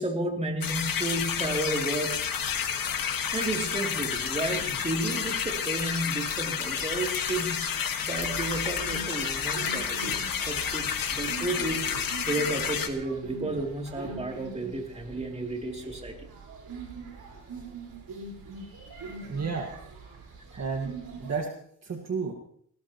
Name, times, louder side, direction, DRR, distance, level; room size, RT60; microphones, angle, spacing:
voice 1, 0.0-2.2 3.3-7.7 8.0-10.0 10.5-10.8 11.1-11.9 12.3-16.3 18.6-18.9 20.5-20.6, right 2 dB, 15° right, 1 dB, 3.1 m, -32 dB
sound 1, 0.6-12.9, left 7 dB, 65° left, 1.7 m, -30 dB
sound 2, 8.1-21.3, right 3 dB, 80° right, 4.8 m, -42 dB
voice 2, 19.2-19.7 20.6-21.5 21.8-22.3, right 5 dB, 45° right, 2 dB, 1.8 m, -32 dB
19.0 x 18.0 x 3.0 m, 0.63 s
cardioid pair, 100°, 37 cm